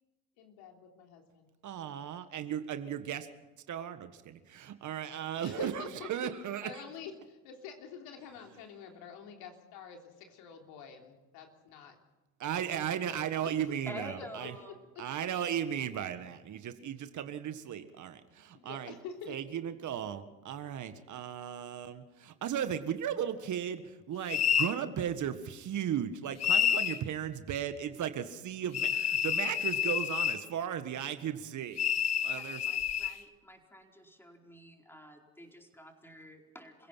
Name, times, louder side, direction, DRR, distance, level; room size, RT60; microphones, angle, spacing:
voice 1, 0.4-1.5 5.4-6.1 6.6-12.0 12.6-13.5 13.9-15.1 18.5-19.4, left 7 dB, 65° left, 3 dB, 3.5 m, -48 dB
voice 2, 1.6-3.3 3.7-6.8 12.4-14.6 15.0-18.9 19.3-31.9 32.2-32.7, right 9 dB, 50° right, 10 dB, 1.7 m, -36 dB
voice 3, 13.9-14.8 32.3-36.9, equal, 5° left, 2 dB, 4.5 m, -49 dB
sound 1, 24.3-24.8 26.4-27.0 28.7-30.4 31.8-33.2, left 9 dB, 40° left, 1.5 m, -29 dB
29.0 x 16.5 x 5.8 m, 1.1 s
hypercardioid pair, 70°, 39 cm